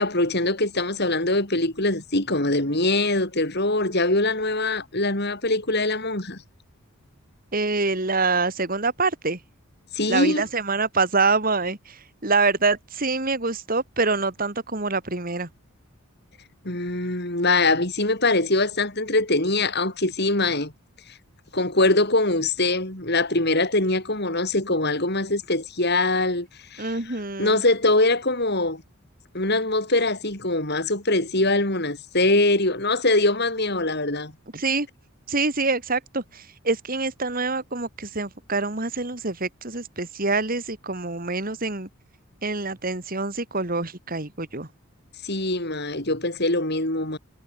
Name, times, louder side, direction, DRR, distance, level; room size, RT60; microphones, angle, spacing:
voice 1, 0.0-6.4 9.9-10.4 16.6-20.7 21.5-26.9 27.4-28.8 29.3-34.3 45.2-47.2, left 2 dB, 50° left, 5.1 m, -23 dB
voice 2, 7.5-9.4 10.1-15.5 26.8-27.6 34.5-34.9 35.3-41.9 42.4-44.7, right 3 dB, 40° right, 2.7 m, -25 dB
head